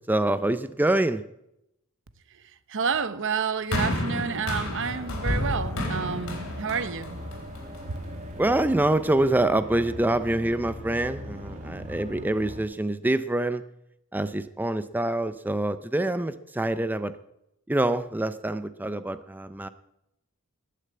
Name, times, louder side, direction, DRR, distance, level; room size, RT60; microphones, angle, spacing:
voice 1, 0.1-1.2 8.4-13.6 14.1-17.1 17.7-19.7, right 1 dB, 10° right, 0.5 m, -25 dB
voice 2, 2.7-7.2 7.9-8.0, right 6 dB, 60° right, 0.9 m, -29 dB
sound 1, 3.7-8.1 8.9-9.0, left 1 dB, 65° left, 3.7 m, -31 dB
sound 2, 4.8-12.6, equal, 35° right, 2.1 m, -40 dB
19.5 x 6.7 x 8.6 m
head